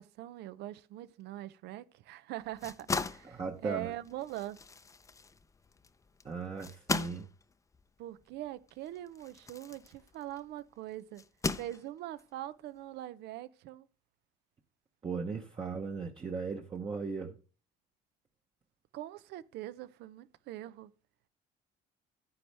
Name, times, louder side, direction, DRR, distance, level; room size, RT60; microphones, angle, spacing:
voice 1, 0.0-4.6 8.0-11.2 11.6-13.9 18.9-20.9, right 14 dB, 80° right, 0.6 m, -42 dB
sound 1, 2.4-10.5 11.2-12.2, left 4 dB, 20° left, 0.5 m, -39 dB
voice 2, 3.2-3.9 6.2-7.3 15.0-17.4, right 4 dB, 30° right, 1.0 m, -37 dB
10.0 x 9.7 x 3.3 m
cardioid pair, 110°, 17 cm